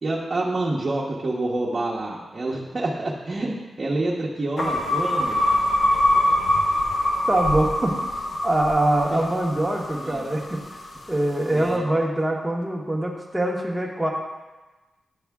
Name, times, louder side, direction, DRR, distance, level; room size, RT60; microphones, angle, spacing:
voice 1, 0.0-5.4 9.1-9.2 10.0-10.3 11.5-11.8, right 2 dB, 40° right, -5 dB, 0.9 m, -27 dB
sound 1, 4.6-10.9, left 1 dB, 55° left, 0.8 m, -24 dB
voice 2, 7.3-7.9 8.4-10.6 11.1-14.1, right 1 dB, 10° right, -2 dB, 1.0 m, -23 dB
10.5 x 3.5 x 3.5 m, 1.2 s
wide cardioid pair, 95°, 0 cm